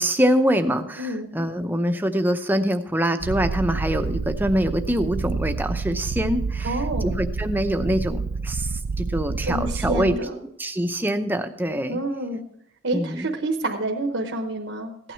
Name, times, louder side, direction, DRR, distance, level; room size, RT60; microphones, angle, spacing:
voice 1, 0.0-10.2 10.6-12.0 12.9-13.3, equal, 10° right, 7 dB, 0.6 m, -24 dB
voice 2, 1.0-1.3 6.6-7.1 9.4-10.4 11.9-12.4 12.8-15.1, right 1 dB, 75° right, 2 dB, 1.0 m, -28 dB
Purr, 3.2-10.2, right 4 dB, 50° right, 0.4 m, -28 dB
15.5 x 9.2 x 4.5 m, 0.71 s
head